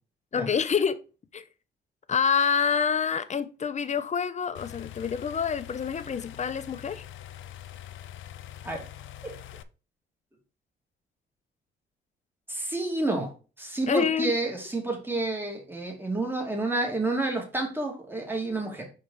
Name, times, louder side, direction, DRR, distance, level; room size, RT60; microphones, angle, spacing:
voice 1, 0.3-1.0 1.3-1.4 2.1-7.0 13.9-14.3, left 6 dB, 35° left, 0.6 m, -27 dB
sound 1, 4.5-9.6, left 12 dB, 75° left, 0.5 m, -44 dB
voice 2, 12.5-13.3 13.6-18.9, right 2 dB, 10° right, 2.2 m, -29 dB
5.3 x 4.6 x 3.9 m
cardioid pair, 90°, 20 cm